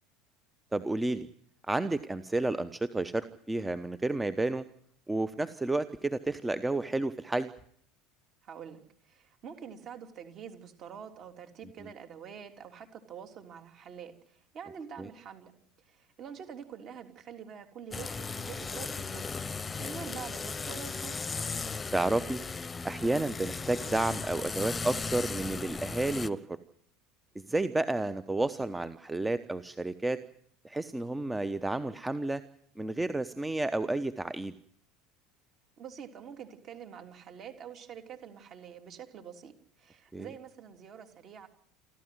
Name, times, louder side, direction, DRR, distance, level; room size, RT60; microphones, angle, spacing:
voice 1, 0.7-1.3 1.7-4.6 5.1-7.5 15.0-15.1 21.9-22.4 22.8-26.4 27.3-30.2 30.6-32.4 32.8-34.5 40.1-40.3, right 2 dB, 10° right, 14 dB, 1.0 m, -31 dB
voice 2, 8.4-15.5 15.8-19.2 19.8-21.2 35.8-39.5 39.8-41.5, right 7 dB, 40° right, 5 dB, 3.3 m, -46 dB
sound 1, 17.9-26.3, left 4 dB, 20° left, 1.1 m, -37 dB
28.5 x 13.0 x 9.4 m, 0.63 s
figure-of-eight pair, 70°, 0 cm